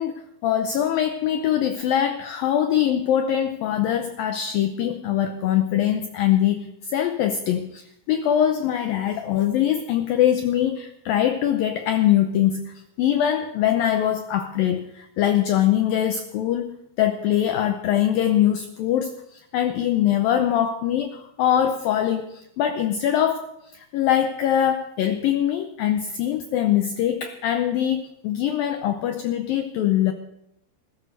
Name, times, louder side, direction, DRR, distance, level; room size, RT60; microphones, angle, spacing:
voice 1, 0.0-30.1, left 10 dB, 75° left, 7 dB, 2.1 m, -23 dB
19.0 x 15.5 x 4.0 m, 0.81 s
omnidirectional pair, 5.0 m